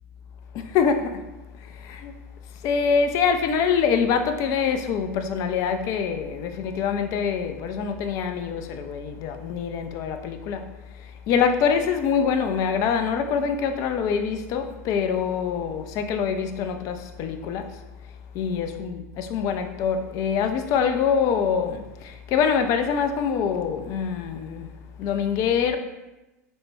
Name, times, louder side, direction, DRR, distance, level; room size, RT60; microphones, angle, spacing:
voice 1, 0.5-1.2 1.6-2.1 2.6-17.8 18.3-24.7 25.0-25.8, left 6 dB, 40° left, 0.3 m, -25 dB
4.2 x 2.1 x 3.1 m
figure-of-eight pair, 85°, 9 cm